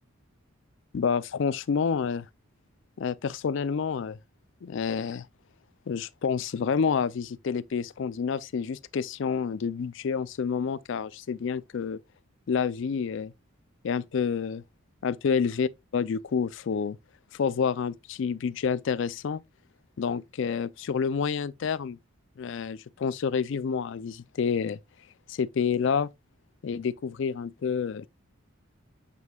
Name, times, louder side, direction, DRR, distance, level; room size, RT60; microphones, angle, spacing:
voice 1, 0.9-2.3 3.0-4.2 4.6-5.3 5.9-12.0 12.5-13.3 13.8-14.6 15.0-17.0 17.3-19.4 20.0-22.0 22.4-24.8 25.3-26.1 26.6-28.1, left 6 dB, 60° left, 0.4 m, -28 dB
7.4 x 6.0 x 2.3 m
head